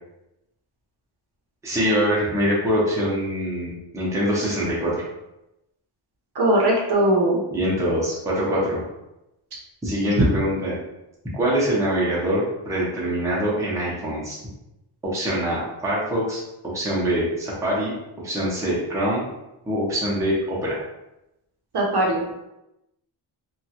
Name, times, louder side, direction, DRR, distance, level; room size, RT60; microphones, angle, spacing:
voice 1, 1.6-5.0 7.5-8.8 9.8-10.8 11.3-14.4 15.1-16.4 16.7-17.9 18.2-19.2 19.6-20.8, equal, 5° right, -7 dB, 0.6 m, -24 dB
voice 2, 6.3-7.4 10.0-10.3 21.7-22.2, right 1 dB, 55° right, -3 dB, 0.7 m, -20 dB
2.9 x 2.3 x 2.8 m, 0.92 s
wide cardioid pair, 170°, 49 cm